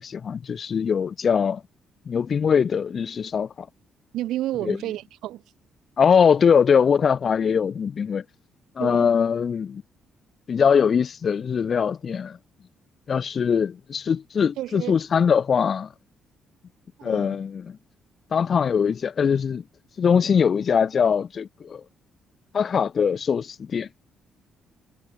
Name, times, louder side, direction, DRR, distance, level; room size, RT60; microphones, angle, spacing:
voice 1, 0.0-1.6 2.1-3.7 4.6-4.8 6.0-8.2 8.8-9.8 10.5-12.4 13.1-15.9 17.0-17.8 18.3-19.6 20.0-21.8 22.5-23.9, left 6 dB, 50° left, 0.4 m, -22 dB
voice 2, 4.1-5.4 8.8-9.1 14.6-15.0 17.0-17.4, right 14 dB, 85° right, 1.5 m, -31 dB
cardioid pair, 90°, 0 cm